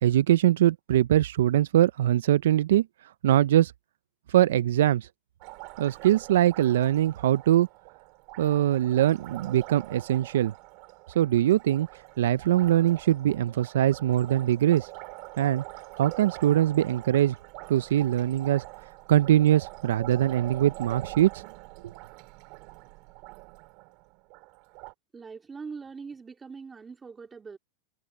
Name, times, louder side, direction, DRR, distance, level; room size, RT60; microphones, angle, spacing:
voice 1, 0.0-2.9 3.2-3.7 4.3-5.1 5.8-7.7 8.4-10.5 11.2-11.9 12.2-14.9 15.4-15.6 16.0-17.3 17.7-18.6 19.1-21.4, right 12 dB, 80° right, 0.4 m, -22 dB
Liquid, 5.4-24.9, right 26 dB, 55° right, 3.2 m, -44 dB
voice 2, 25.1-27.6, right 5 dB, 15° right, 2.5 m, -42 dB
supercardioid pair, 125°, 0 cm